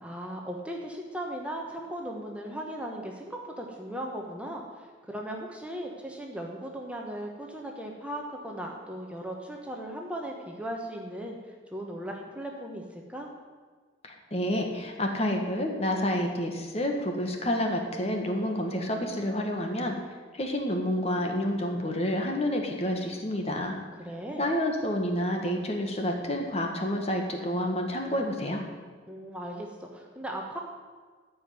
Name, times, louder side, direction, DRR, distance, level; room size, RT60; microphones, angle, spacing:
voice 1, 0.0-13.3 24.0-24.4 29.1-30.6, right 1 dB, 5° right, 0 dB, 1.2 m, -37 dB
voice 2, 14.0-20.0 20.3-23.8 24.4-28.6, left 1 dB, 35° left, 2 dB, 1.5 m, -29 dB
14.0 x 5.4 x 9.5 m, 1.5 s
head